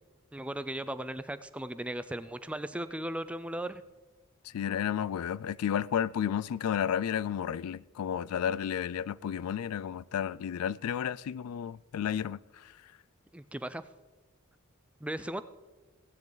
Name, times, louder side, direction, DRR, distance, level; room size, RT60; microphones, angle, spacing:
voice 1, 0.3-3.8 13.3-13.8 15.0-15.4, right 1 dB, 5° right, 0.4 m, -37 dB
voice 2, 4.5-12.4, left 8 dB, 80° left, 0.3 m, -32 dB
17.0 x 10.5 x 4.0 m
head